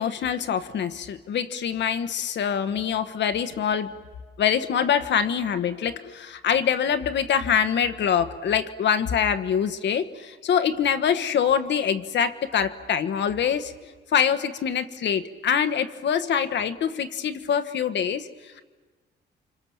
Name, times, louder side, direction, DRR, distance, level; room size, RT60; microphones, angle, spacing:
voice 1, 0.0-3.9 4.4-13.7 14.1-18.3, left 8 dB, 65° left, 10 dB, 1.3 m, -24 dB
30.0 x 25.5 x 7.2 m, 1.4 s
cardioid pair, 90°, 20 cm